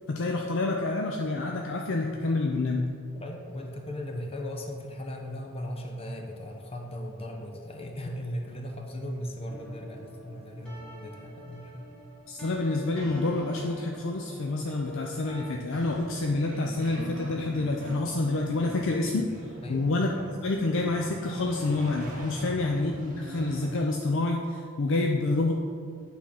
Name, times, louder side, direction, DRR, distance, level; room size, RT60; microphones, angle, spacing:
voice 1, 0.1-2.9 12.3-19.3 19.7-20.1 20.4-25.5, left 2 dB, 60° left, 1 dB, 0.5 m, -28 dB
voice 2, 3.1-11.9 19.6-19.8 22.5-22.6, equal, 25° left, 2 dB, 0.8 m, -37 dB
sound 1, 9.5-15.5, equal, 5° left, 1.3 m, -43 dB
sound 2, 15.7-23.8, equal, 40° right, 1.7 m, -39 dB
8.5 x 3.8 x 5.8 m, 2.2 s
head